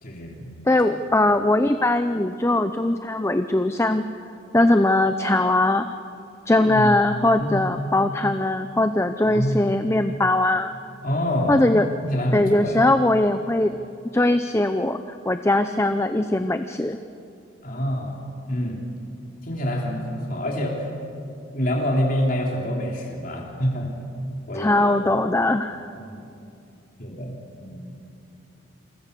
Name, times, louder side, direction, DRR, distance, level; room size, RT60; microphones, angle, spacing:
voice 1, 0.0-0.5 6.6-6.9 7.4-7.7 9.2-9.7 11.0-11.6 12.0-12.8 17.6-18.2 18.5-18.9 19.4-20.9 21.5-23.9 24.5-24.9 26.0-26.3 27.0-27.9, equal, 45° left, -1 dB, 3.3 m, -26 dB
voice 2, 0.7-4.0 4.5-5.9 6.5-10.7 11.5-11.9 12.3-13.8 14.1-17.0 24.5-25.9, left 1 dB, 15° left, 9 dB, 0.6 m, -20 dB
28.5 x 24.0 x 6.8 m, 2.6 s
head